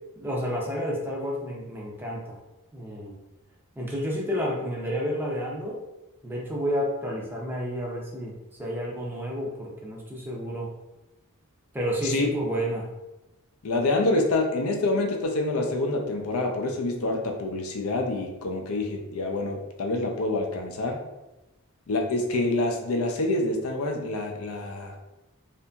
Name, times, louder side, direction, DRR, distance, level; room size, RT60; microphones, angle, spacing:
voice 1, 0.2-2.4 2.7-3.1 3.8-5.8 6.2-10.7 11.7-12.9, equal, 10° right, -3 dB, 0.4 m, -30 dB
voice 2, 13.6-21.0 21.9-25.0, left 2 dB, 75° left, 3 dB, 0.5 m, -27 dB
2.8 x 2.5 x 2.2 m, 0.98 s
head